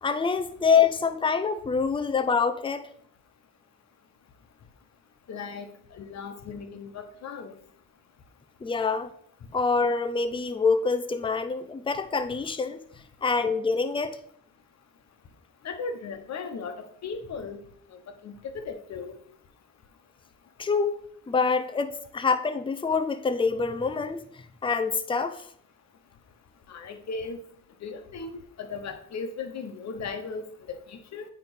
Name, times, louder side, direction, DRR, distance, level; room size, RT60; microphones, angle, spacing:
voice 1, 0.0-2.9 8.6-9.1 9.5-12.8 13.2-14.2 20.6-21.0 21.3-25.5, left 5 dB, 15° left, 0.6 m, -26 dB
voice 2, 5.3-7.6 15.6-17.6 17.9-19.2 26.7-27.4 27.8-31.3, left 4 dB, 60° left, 1.2 m, -37 dB
9.0 x 3.4 x 4.9 m
cardioid pair, 90°, 30 cm